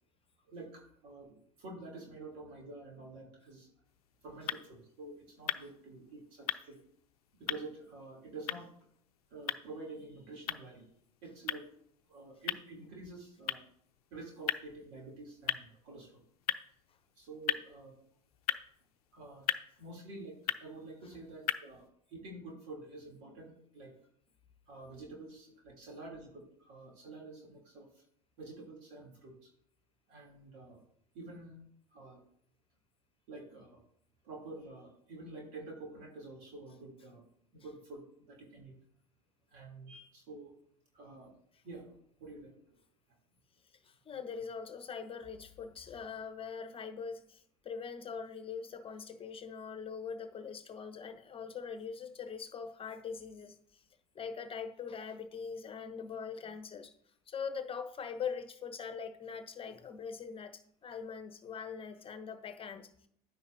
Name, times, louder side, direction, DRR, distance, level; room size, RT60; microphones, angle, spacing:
voice 1, 0.5-3.7 4.2-6.8 7.4-8.7 9.3-10.8 11.2-11.7 12.1-13.6 14.1-16.2 17.1-18.0 19.1-19.5 19.8-24.0 24.7-28.0 28.4-29.5 30.1-30.8 31.1-31.6 31.9-32.2 33.3-33.8 34.2-37.2 37.5-38.8 39.5-40.6 40.9-41.3 41.6-42.8, right 2 dB, 60° right, -1 dB, 3.2 m, -48 dB
sound 1, 3.8-21.9, left 12 dB, 75° left, 0.6 m, -41 dB
voice 2, 43.8-53.8 54.1-56.9 57.3-62.9, left 6 dB, 30° left, 9 dB, 1.1 m, -42 dB
11.0 x 9.4 x 2.7 m, 0.65 s
hypercardioid pair, 75°, 19 cm